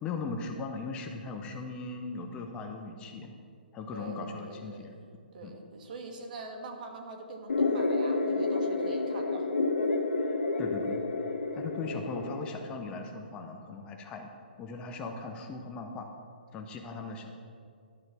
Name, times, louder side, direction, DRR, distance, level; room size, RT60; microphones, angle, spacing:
voice 1, 0.0-3.3 3.7-5.0 5.4-5.5 10.6-11.0 11.5-14.3 14.6-16.1 16.5-17.4, left 4 dB, 15° left, 4 dB, 0.6 m, -38 dB
voice 2, 3.9-4.8 5.3-9.5, right 2 dB, 55° right, 3 dB, 1.4 m, -43 dB
sound 1, 7.5-12.5, left 3 dB, 85° left, 1.0 m, -29 dB
11.5 x 3.9 x 6.0 m, 2.2 s
hypercardioid pair, 150°, 6 cm